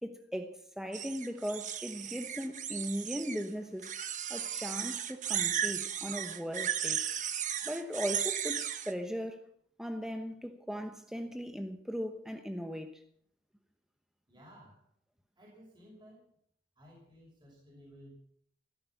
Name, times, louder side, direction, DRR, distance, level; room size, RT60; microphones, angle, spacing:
voice 1, 0.0-3.9 4.3-7.2 7.6-9.4 9.8-13.0, equal, 5° right, 1.0 m, -38 dB
sound 1, 0.9-3.5 3.8-8.9, right 9 dB, 45° right, 1.1 m, -35 dB
voice 2, 14.3-14.9 15.4-16.4 16.8-18.2, equal, 25° right, 6.1 m, -56 dB
16.0 x 14.0 x 5.9 m
head